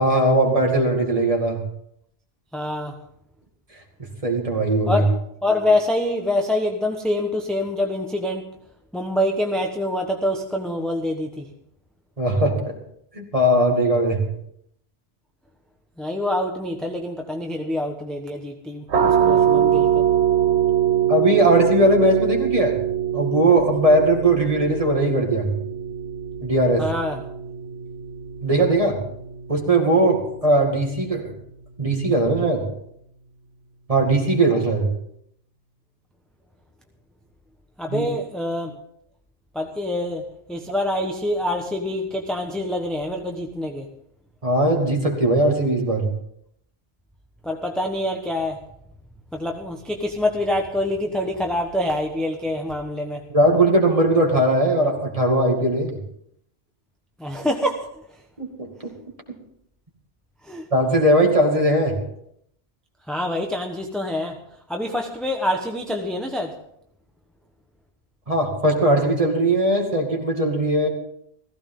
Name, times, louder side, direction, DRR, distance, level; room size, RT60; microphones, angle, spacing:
voice 1, 0.0-1.6 4.2-5.0 12.2-12.7 13.1-14.2 21.1-22.8 23.1-25.5 26.4-26.9 28.4-29.0 29.5-31.3 31.8-32.6 33.9-34.9 37.9-38.1 44.4-46.1 53.3-56.0 58.4-58.9 60.7-62.0 68.3-70.9, right 1 dB, 30° right, 1 dB, 2.5 m, -19 dB
voice 2, 2.5-3.0 4.9-5.1 5.4-8.5 8.9-11.5 16.0-20.0 26.8-27.2 37.8-38.8 39.5-40.2 40.5-43.9 47.4-48.6 49.3-53.2 57.2-57.9 60.4-60.7 63.1-64.4 64.7-66.5, left 1 dB, ahead, 2 dB, 1.0 m, -25 dB
sound 1, 18.9-30.4, right 9 dB, 70° right, 1.3 m, -23 dB
15.5 x 15.5 x 3.8 m, 0.71 s
omnidirectional pair, 1.2 m